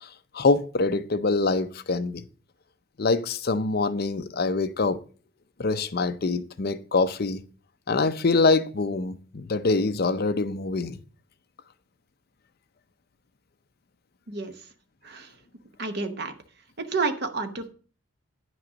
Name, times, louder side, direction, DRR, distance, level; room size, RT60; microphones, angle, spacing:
voice 1, 0.3-2.2 3.0-5.0 5.6-7.4 7.9-11.0, left 3 dB, 45° left, 0.5 m, -24 dB
voice 2, 14.3-14.6 15.0-15.3 15.8-16.3 16.8-17.7, right 4 dB, 50° right, 0.9 m, -30 dB
9.3 x 6.2 x 5.1 m
head